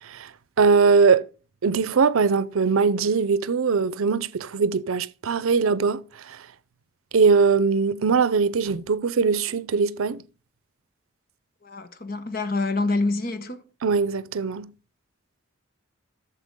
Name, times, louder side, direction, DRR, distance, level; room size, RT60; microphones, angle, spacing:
voice 1, 0.0-1.3 1.6-6.5 7.1-10.2 13.8-14.7, right 5 dB, 85° right, 0.5 m, -21 dB
voice 2, 11.6-13.6, left 3 dB, 45° left, 1.0 m, -26 dB
13.0 x 6.8 x 3.6 m
head